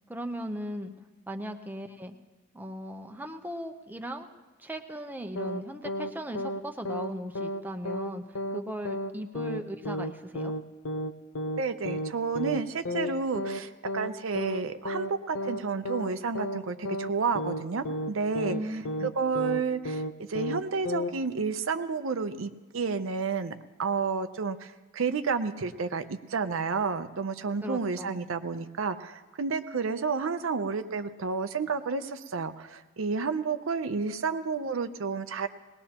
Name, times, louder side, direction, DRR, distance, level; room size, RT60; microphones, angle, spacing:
voice 1, 0.1-0.9 1.3-2.1 2.5-4.3 4.6-8.2 8.5-10.5 18.5-19.1 27.6-28.2, equal, 10° right, 4 dB, 0.7 m, -37 dB
sound 1, 5.4-5.6 5.9-6.1 6.4-6.6 6.9-7.1 7.4-7.6 7.9-8.1 8.4-8.6 8.9-9.1 9.4-9.6 9.9-10.1 10.4-10.6 10.9-11.1 11.4-11.6 11.9-12.1 12.4-12.6 12.9-13.1 13.4-13.6 13.9-14.1 14.4-14.6 14.9-15.1 15.4-15.6 15.9-16.1 16.4-16.6 16.9-17.1 17.4-17.6 17.9-18.1 18.4-18.6 18.9-19.1 19.4-19.6 19.9-20.1 20.4-20.6 20.9-21.1, equal, 85° left, 0.7 m, -32 dB
voice 2, 11.6-18.8 19.0-20.0 20.3-35.5, right 5 dB, 75° right, 9 dB, 0.6 m, -31 dB
20.0 x 19.0 x 2.9 m, 1.2 s
head